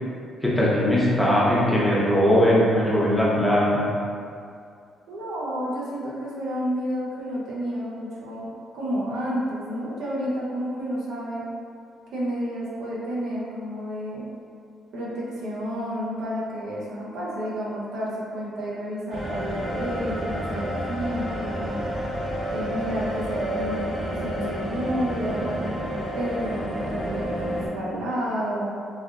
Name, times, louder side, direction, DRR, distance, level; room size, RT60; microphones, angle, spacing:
voice 1, 0.4-3.9, equal, 5° left, -7 dB, 0.8 m, -20 dB
voice 2, 5.1-11.4 12.1-14.2 14.9-21.9 22.5-25.7 26.1-28.7, equal, 85° right, -6 dB, 0.7 m, -30 dB
sound 1, 19.1-27.7, equal, 45° right, 1.1 m, -30 dB
3.3 x 2.4 x 2.5 m, 2.4 s
cardioid pair, 90°, 0 cm